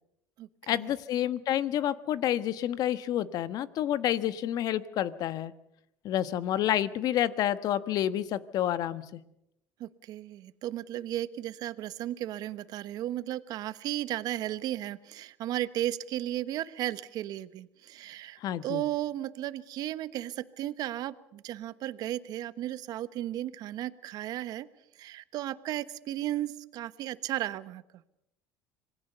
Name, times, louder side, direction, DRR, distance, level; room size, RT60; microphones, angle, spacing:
voice 1, 0.7-5.5 6.0-9.2 18.4-18.8, left 11 dB, 60° left, 13 dB, 1.3 m, -29 dB
voice 2, 9.8-24.7 25.0-27.8, right 13 dB, 60° right, 14 dB, 1.1 m, -35 dB
26.5 x 19.5 x 6.8 m, 0.83 s
supercardioid pair, 95°, 7 cm